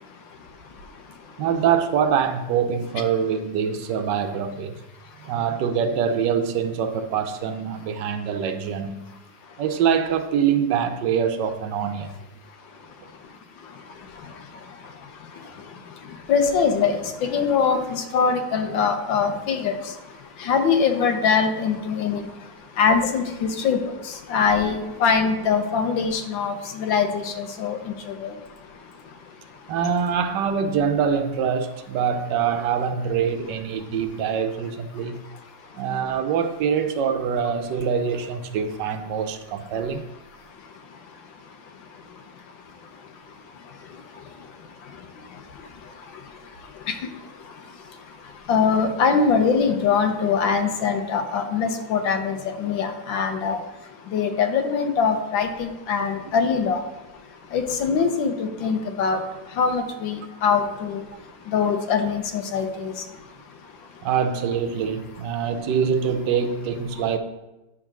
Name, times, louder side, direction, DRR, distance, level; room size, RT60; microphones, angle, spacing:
voice 1, 0.0-1.4 5.0-5.3 9.4-9.6 12.5-29.7 35.1-35.9 40.4-64.1, left 5 dB, 85° left, 6 dB, 1.6 m, -25 dB
voice 2, 1.4-4.8 5.2-9.0 9.6-12.2 29.7-35.2 35.7-40.0 64.0-67.2, right 7 dB, 75° right, 9 dB, 1.3 m, -24 dB
9.3 x 3.7 x 5.9 m, 1.0 s
omnidirectional pair, 2.0 m